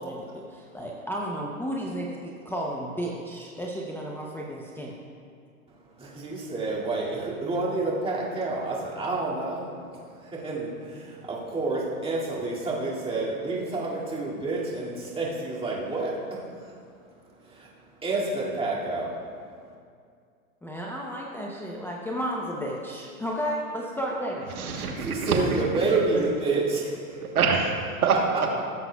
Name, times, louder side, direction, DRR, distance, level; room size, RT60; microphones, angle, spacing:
voice 1, 0.0-4.9 20.6-24.4 26.1-26.2, equal, 5° left, -2 dB, 0.6 m, -33 dB
voice 2, 6.0-9.7 10.1-16.8 17.5-17.7 18.0-19.1 24.7-27.3, right 3 dB, 15° right, -6 dB, 2.3 m, -29 dB
voice 3, 24.5-25.7 27.2-28.6, right 5 dB, 90° right, 3 dB, 1.3 m, -26 dB
16.0 x 7.7 x 2.3 m, 2.2 s
hypercardioid pair, 115°, 43 cm